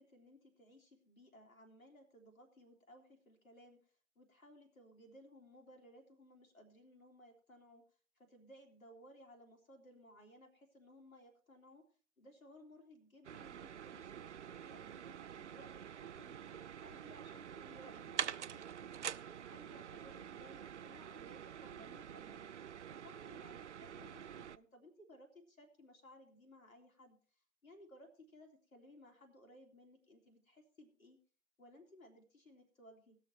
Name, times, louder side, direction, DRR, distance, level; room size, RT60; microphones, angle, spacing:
voice 1, 0.0-7.8 8.2-11.8 12.2-22.5 22.9-27.2 27.6-31.2 31.6-33.2, equal, 75° left, 2 dB, 3.0 m, -60 dB
sound 1, 13.2-24.6, right 9 dB, 55° right, 0.5 m, -47 dB
19.5 x 6.7 x 4.5 m, 0.39 s
figure-of-eight pair, 130°, 42 cm